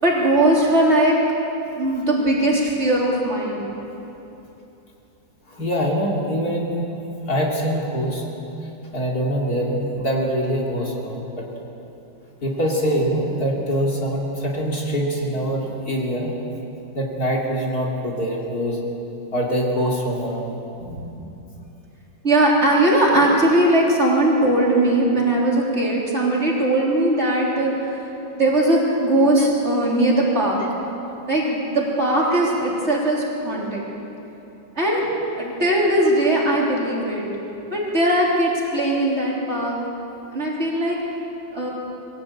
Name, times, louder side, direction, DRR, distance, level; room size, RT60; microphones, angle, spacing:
voice 1, 0.0-1.2 1.8-3.6 20.8-21.2 22.2-28.0 28.4-30.6 31.3-33.8 34.8-35.1 35.4-37.3 37.7-39.8 40.3-41.0 41.5-41.7, right 1 dB, 35° right, -4 dB, 3.9 m, -19 dB
voice 2, 5.5-6.8 7.3-8.2 8.9-11.5 12.4-16.3 16.9-18.8 19.3-20.5 29.4-29.5 32.3-32.4, equal, 50° left, -2 dB, 3.2 m, -24 dB
22.5 x 16.0 x 8.6 m, 3.0 s
omnidirectional pair, 2.1 m